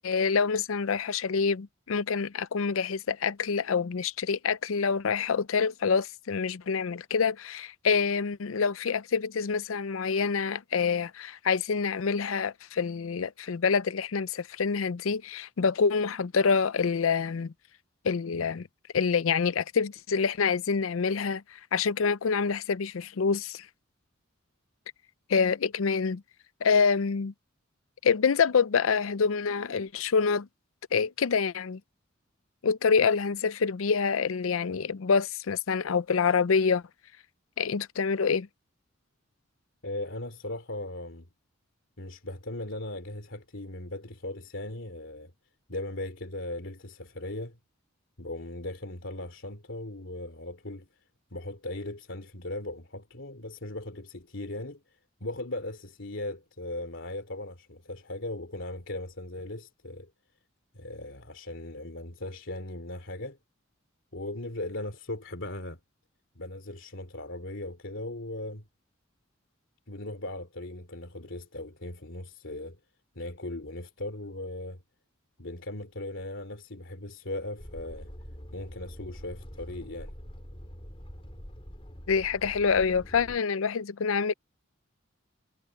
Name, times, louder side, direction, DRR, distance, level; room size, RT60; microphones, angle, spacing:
voice 1, 0.0-17.5 18.0-18.7 18.9-23.7 25.3-26.2 26.6-27.3 28.0-30.5 30.9-31.8 32.6-36.8 37.6-38.5 82.1-84.3, left 5 dB, 85° left, 0.5 m, -26 dB
voice 2, 39.8-41.3 42.0-45.3 45.7-47.6 48.2-50.9 51.3-54.8 55.2-60.1 60.7-63.4 64.1-65.8 66.3-68.7 69.9-72.8 73.1-74.8 75.4-78.1 78.5-80.1, left 1 dB, 65° left, 3.2 m, -38 dB
sound 1, 77.6-83.4, equal, 30° left, 4.9 m, -45 dB
head